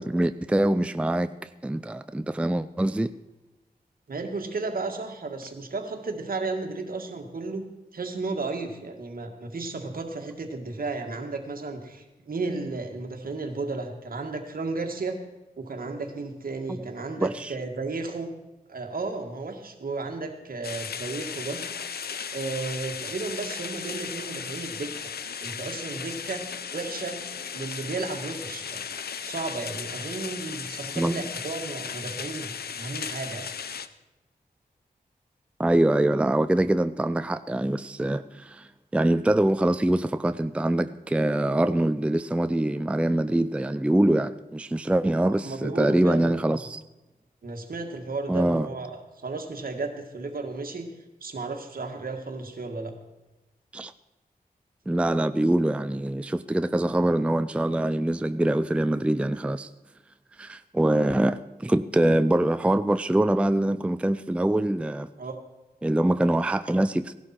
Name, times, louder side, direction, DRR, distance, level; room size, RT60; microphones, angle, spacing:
voice 1, 0.0-3.1 16.7-16.9 17.2-17.5 31.0-31.2 35.6-46.8 48.3-48.7 53.7-53.9 54.9-59.7 60.4-65.1 65.8-67.1, right 1 dB, 5° right, 0.4 m, -24 dB
voice 2, 4.1-7.6 7.9-15.2 15.6-18.3 18.7-21.6 22.3-25.1 25.4-26.4 26.7-27.2 27.5-28.8 29.2-33.5 45.2-46.6 47.4-50.9 51.2-52.9 65.2-65.3, right 3 dB, 65° right, 1.9 m, -33 dB
sound 1, 20.6-33.9, left 7 dB, 85° left, 0.6 m, -36 dB
17.0 x 11.5 x 4.4 m
wide cardioid pair, 75°, 16 cm